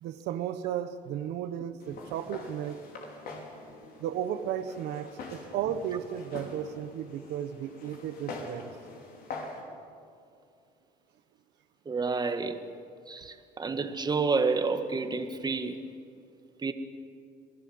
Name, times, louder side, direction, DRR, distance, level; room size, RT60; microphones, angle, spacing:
voice 1, 0.0-2.8 4.0-8.7, right 9 dB, 85° right, 9 dB, 1.1 m, -34 dB
Walk footsteps, 1.8-9.6, left 3 dB, 65° left, 5.4 m, -44 dB
voice 2, 11.9-12.6 13.1-15.8 16.6-16.7, right 4 dB, 25° right, 8 dB, 1.8 m, -29 dB
27.5 x 19.0 x 7.9 m, 2.4 s
cardioid pair, 110°, 17 cm